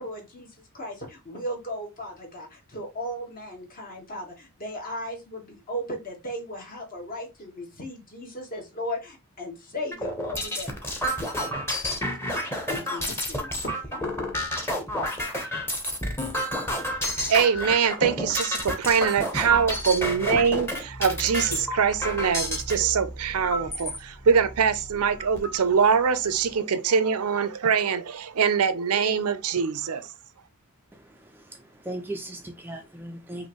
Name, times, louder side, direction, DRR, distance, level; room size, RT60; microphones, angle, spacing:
voice 1, 0.0-11.0 12.4-14.1, equal, 40° left, 1.4 m, -36 dB
sound 1, 9.9-22.8 23.4-24.0 24.5-24.6 24.9-25.6, equal, 10° left, 1.0 m, -30 dB
voice 2, 17.3-30.1, right 6 dB, 75° right, 0.5 m, -23 dB
sound 2, 19.4-26.6, right 1 dB, 70° left, 2.5 m, -42 dB
voice 3, 30.9-33.5, right 1 dB, 10° right, 0.4 m, -38 dB
5.4 x 2.6 x 3.0 m
head